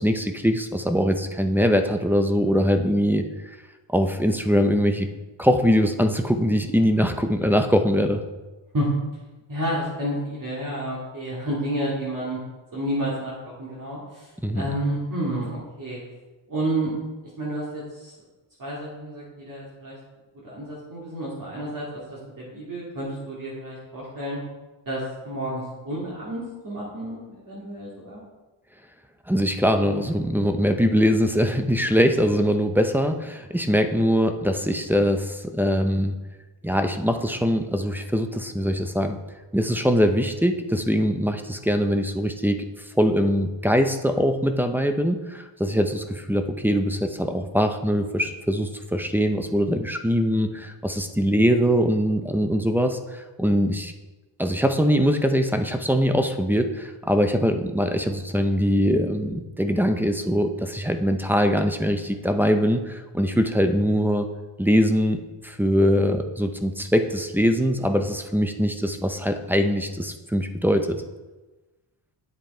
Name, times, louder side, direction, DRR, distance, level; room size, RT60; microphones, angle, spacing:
voice 1, 0.0-3.6 3.9-5.1 5.4-8.2 14.4-14.7 29.3-36.1 36.6-39.2 39.5-42.7 43.0-53.9 54.4-64.3 64.6-71.0, equal, 5° right, 7 dB, 0.5 m, -22 dB
voice 2, 9.5-12.4 12.7-13.3 13.6-16.0 16.5-16.9 17.4-18.1 18.6-20.0 20.4-24.4 24.9-28.2, right 1 dB, 45° right, -6 dB, 2.4 m, -30 dB
9.3 x 8.0 x 4.3 m, 1.2 s
wide cardioid pair, 165°, 47 cm